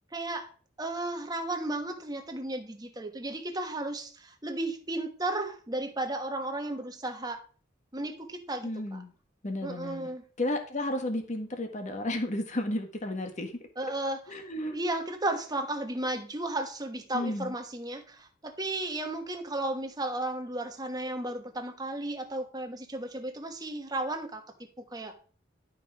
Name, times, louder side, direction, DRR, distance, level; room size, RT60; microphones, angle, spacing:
voice 1, 0.1-0.5 0.8-7.4 7.9-9.0 9.6-10.2 13.8-14.4 14.7-25.1, right 1 dB, 20° right, 5 dB, 1.3 m, -34 dB
voice 2, 8.6-9.1 9.4-10.1 10.4-13.5 14.3-14.8 17.1-17.5, left 1 dB, 40° left, 5 dB, 1.4 m, -32 dB
11.5 x 5.3 x 4.7 m, 0.40 s
head